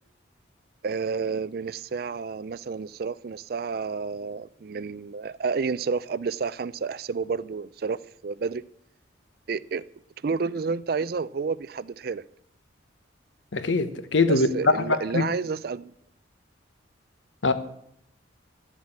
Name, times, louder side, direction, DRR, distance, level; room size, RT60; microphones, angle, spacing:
voice 1, 0.8-8.6 9.5-9.8 10.2-12.2 14.3-15.9, right 5 dB, 50° right, 0.4 m, -30 dB
voice 2, 13.5-15.2 17.4-17.5, left 3 dB, 75° left, 1.1 m, -22 dB
12.0 x 7.4 x 8.6 m
head